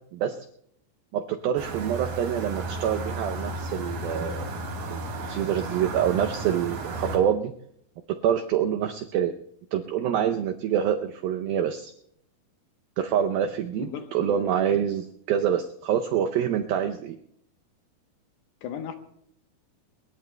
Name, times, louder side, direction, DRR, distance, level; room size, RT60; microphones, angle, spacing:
voice 1, 1.1-4.5 4.9-7.5 8.2-9.3 9.7-11.9 13.0-17.2, right 9 dB, 85° right, 6 dB, 2.1 m, -26 dB
sound 1, 1.6-7.2, right 2 dB, 55° right, 3.5 m, -33 dB
voice 2, 13.8-14.5 18.6-19.0, left 8 dB, 75° left, 7 dB, 2.9 m, -36 dB
25.0 x 21.5 x 2.2 m, 0.70 s
omnidirectional pair, 5.1 m